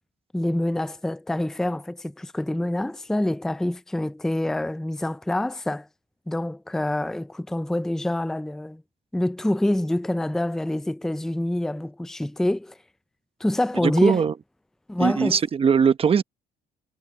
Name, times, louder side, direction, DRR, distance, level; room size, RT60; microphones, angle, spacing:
voice 1, 0.3-5.9 6.3-8.8 9.1-12.8 13.4-14.2 14.9-15.4, left 1 dB, 5° left, 0.5 m, -26 dB
voice 2, 13.8-14.3 15.0-16.2, right 6 dB, 35° right, 1.1 m, -20 dB
cardioid pair, 110°, 17 cm